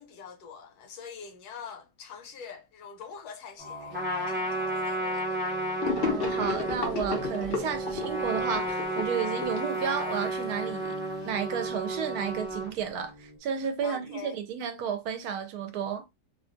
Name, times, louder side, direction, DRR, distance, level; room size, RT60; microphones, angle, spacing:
voice 1, 0.0-5.4 13.8-14.4, left 6 dB, 70° left, 1.1 m, -44 dB
sound 1, 3.6-13.4, right 2 dB, 35° right, 1.2 m, -45 dB
Trumpet, 3.9-12.7, right 1 dB, 15° right, 0.4 m, -32 dB
Gurgling / Sink (filling or washing), 5.8-10.3, left 5 dB, 55° left, 0.7 m, -33 dB
voice 2, 5.9-11.0 11.3-16.0, right 7 dB, 70° right, 1.0 m, -32 dB
2.8 x 2.3 x 2.5 m
omnidirectional pair, 1.8 m